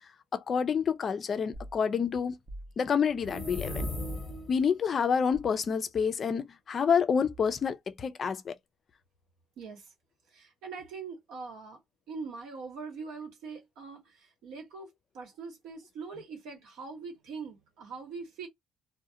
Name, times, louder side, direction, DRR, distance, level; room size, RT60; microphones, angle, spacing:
voice 1, 0.3-2.4 2.8-3.9 4.5-8.5, left 6 dB, 35° left, 0.4 m, -28 dB
sound 1, 1.5-1.8 2.5-2.7 3.4-3.7 5.3-5.6 7.2-7.8, right 1 dB, 35° right, 0.6 m, -46 dB
sound 2, 3.1-4.7, left 1 dB, 10° left, 0.9 m, -36 dB
voice 2, 9.6-9.9 10.3-11.8 12.1-18.5, right 4 dB, 75° right, 1.1 m, -42 dB
2.3 x 2.1 x 2.6 m
cardioid pair, 145°, 0 cm